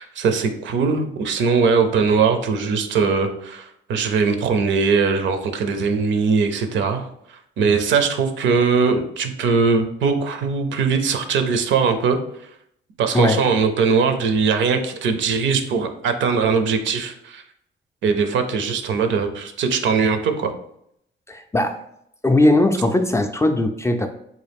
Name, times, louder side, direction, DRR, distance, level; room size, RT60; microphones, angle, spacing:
voice 1, 0.0-3.6 3.9-7.1 7.6-12.2 13.0-17.4 18.0-20.5, right 5 dB, 70° right, 7 dB, 0.6 m, -20 dB
voice 2, 13.1-13.5 21.3-21.8 22.2-24.1, left 1 dB, 15° left, 6 dB, 0.3 m, -19 dB
3.8 x 2.4 x 3.4 m, 0.73 s
cardioid pair, 90°, 20 cm